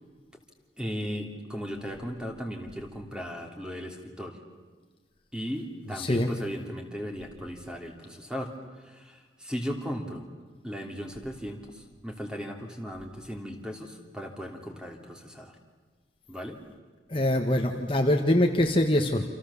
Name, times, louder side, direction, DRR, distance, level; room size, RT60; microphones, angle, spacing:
voice 1, 0.8-4.4 5.3-8.5 8.8-10.2 10.6-15.5 16.3-16.6, equal, 5° right, 3 dB, 3.1 m, -37 dB
voice 2, 5.9-6.3 17.1-19.2, left 1 dB, 30° left, 3 dB, 1.6 m, -24 dB
29.0 x 27.5 x 7.2 m, 1.4 s
head